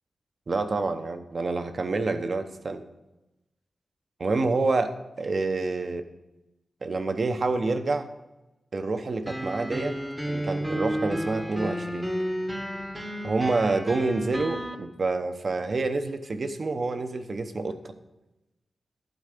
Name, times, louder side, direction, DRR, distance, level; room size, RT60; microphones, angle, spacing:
voice 1, 0.5-2.8 4.2-4.9 5.2-6.0 6.8-8.1 8.7-9.9 10.3-12.1 13.2-17.8, right 3 dB, 45° right, 8 dB, 0.8 m, -27 dB
sound 1, 9.3-14.8, equal, 5° right, 0.9 m, -32 dB
12.0 x 4.6 x 6.6 m, 1.0 s
wide cardioid pair, 125°, 0 cm